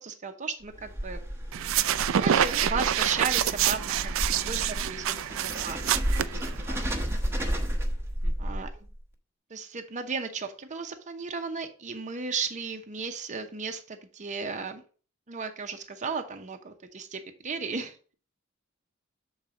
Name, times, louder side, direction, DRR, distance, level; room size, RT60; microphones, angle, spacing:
voice 1, 0.0-1.2 2.0-4.1 4.4-5.8 6.7-6.8 8.4-8.7 9.5-14.8 15.3-18.0, right 5 dB, 35° right, 0.8 m, -35 dB
sound 1, 0.6-9.0, equal, 10° right, 1.1 m, -32 dB
sound 2, 1.5-6.9, right 10 dB, 70° right, 0.4 m, -27 dB
voice 2, 3.8-4.9 6.3-7.0 8.2-8.6, right 3 dB, 90° right, 0.8 m, -50 dB
7.1 x 4.0 x 5.0 m
head